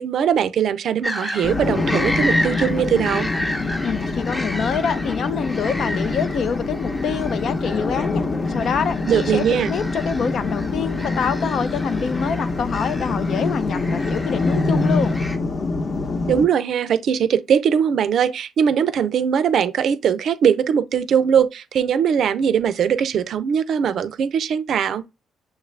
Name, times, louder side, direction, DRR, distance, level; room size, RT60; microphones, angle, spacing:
voice 1, 0.0-3.3 9.1-9.7 16.3-25.0, right 8 dB, 65° right, 0.5 m, -20 dB
sound 1, 1.0-15.4, left 1 dB, 15° left, 0.7 m, -32 dB
sound 2, 1.4-16.4, left 3 dB, 45° left, 0.9 m, -25 dB
voice 2, 3.8-15.1, left 6 dB, 60° left, 0.5 m, -26 dB
6.5 x 2.4 x 3.3 m
cardioid pair, 90°, 0 cm